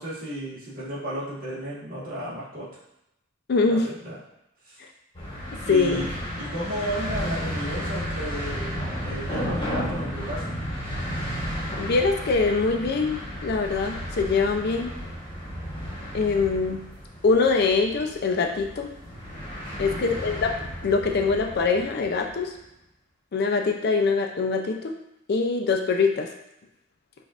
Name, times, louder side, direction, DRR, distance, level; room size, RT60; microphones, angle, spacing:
voice 1, 0.0-2.7 3.7-4.1 4.6-4.8 5.6-10.5 19.8-20.1, right 1 dB, 45° right, -8 dB, 1.4 m, -33 dB
voice 2, 3.5-3.9 4.8-4.9 5.5-6.0 11.8-14.9 16.1-16.9 17.2-18.9 19.8-20.5 20.8-22.5 23.3-25.0 25.3-26.3, left 4 dB, 50° left, 4 dB, 0.4 m, -23 dB
sound 1, 5.1-22.4, equal, 25° left, 1.1 m, -33 dB
5.2 x 2.5 x 2.4 m, 0.86 s
head